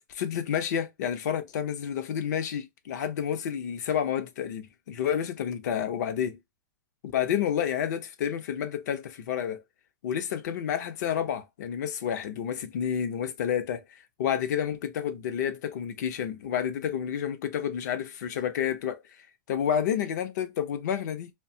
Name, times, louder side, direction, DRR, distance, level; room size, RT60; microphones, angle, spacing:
voice 1, 0.1-6.4 7.0-9.6 10.0-13.8 14.2-19.0 19.5-21.3, left 9 dB, 65° left, 0.6 m, -30 dB
2.5 x 2.2 x 2.6 m
supercardioid pair, 155°, 10 cm